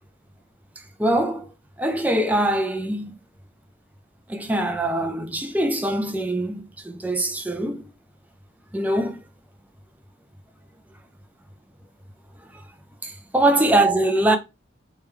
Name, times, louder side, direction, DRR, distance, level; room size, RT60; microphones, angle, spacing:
voice 1, 1.0-1.5 1.8-3.2 4.3-7.8 8.7-9.2 13.0-14.4, right 1 dB, 10° right, 0.5 m, -22 dB
3.4 x 3.0 x 3.2 m
head